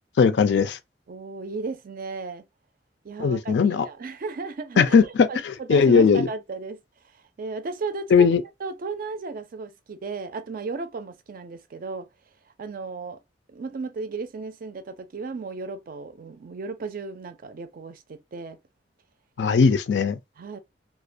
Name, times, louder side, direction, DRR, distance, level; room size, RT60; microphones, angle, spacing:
voice 1, 0.2-0.8 3.2-3.9 4.8-5.0 5.7-6.3 8.1-8.4 19.4-20.2, left 5 dB, 70° left, 0.4 m, -18 dB
voice 2, 1.1-2.5 3.0-6.8 7.1-8.3 8.6-12.1 12.6-13.2 13.5-18.6 20.4-20.6, right 4 dB, 55° right, 0.4 m, -35 dB
2.4 x 2.1 x 2.5 m
head